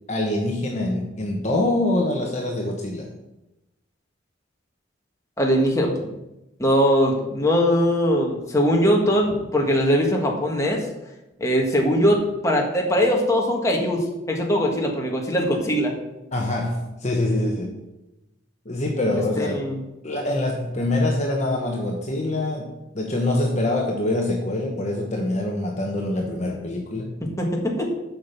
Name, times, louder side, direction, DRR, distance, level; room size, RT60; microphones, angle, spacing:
voice 1, 0.1-3.1 16.3-17.8 18.6-19.6 20.0-27.2, left 1 dB, 35° left, 0 dB, 1.1 m, -25 dB
voice 2, 5.4-6.1 6.6-10.8 11.4-15.9 19.4-19.8 27.2-27.9, equal, 15° left, 0 dB, 1.6 m, -21 dB
7.3 x 6.0 x 7.1 m, 0.95 s
head